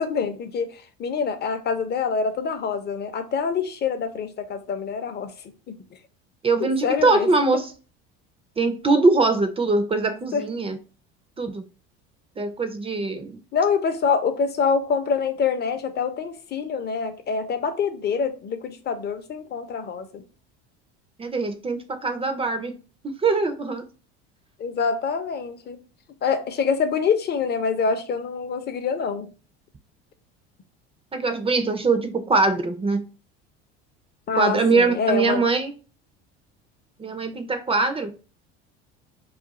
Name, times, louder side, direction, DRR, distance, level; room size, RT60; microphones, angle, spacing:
voice 1, 0.0-5.3 5.7-5.8 6.6-7.3 10.3-10.4 13.5-20.2 24.6-25.8 26.2-29.3 34.3-35.4, left 5 dB, 30° left, 0.6 m, -25 dB
voice 2, 6.4-7.7 8.6-10.8 11.4-11.7 12.4-13.4 21.2-22.7 23.0-23.9 31.1-33.0 34.4-35.7 37.0-38.1, right 3 dB, 20° right, 0.4 m, -22 dB
2.4 x 2.3 x 3.9 m
supercardioid pair, 85°, 31 cm